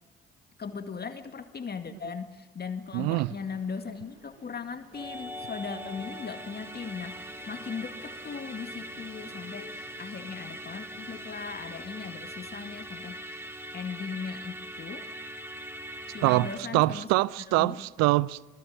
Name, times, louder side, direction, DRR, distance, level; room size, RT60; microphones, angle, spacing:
voice 1, 0.6-13.5 13.7-15.1 16.1-17.1 17.5-17.8, left 5 dB, 35° left, 2.1 m, -38 dB
sound 1, 2.8-11.5, left 1 dB, 85° right, 6.3 m, -55 dB
voice 2, 2.9-3.3 16.2-18.5, right 20 dB, 60° right, 0.7 m, -24 dB
Musical instrument, 4.9-16.6, equal, 10° right, 3.6 m, -41 dB
27.0 x 20.5 x 6.4 m
figure-of-eight pair, 45°, 30 cm